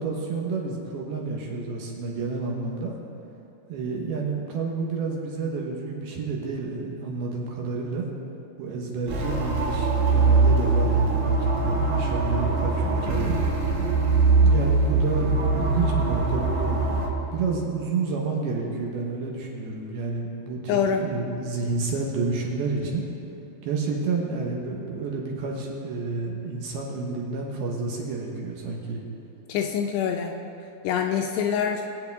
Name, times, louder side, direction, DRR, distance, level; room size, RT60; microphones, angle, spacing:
voice 1, 0.0-2.9 3.7-8.0 8.6-13.4 14.4-16.8 17.3-20.6 21.0-23.1 23.6-29.0, right 4 dB, 70° right, -1 dB, 2.8 m, -30 dB
sound 1, 9.1-17.1, right 3 dB, 90° right, 4.4 m, -22 dB
voice 2, 20.7-21.0 29.5-30.3 30.8-31.8, left 7 dB, 80° left, 3 dB, 2.5 m, -25 dB
21.5 x 8.3 x 3.5 m, 2.7 s
omnidirectional pair, 5.2 m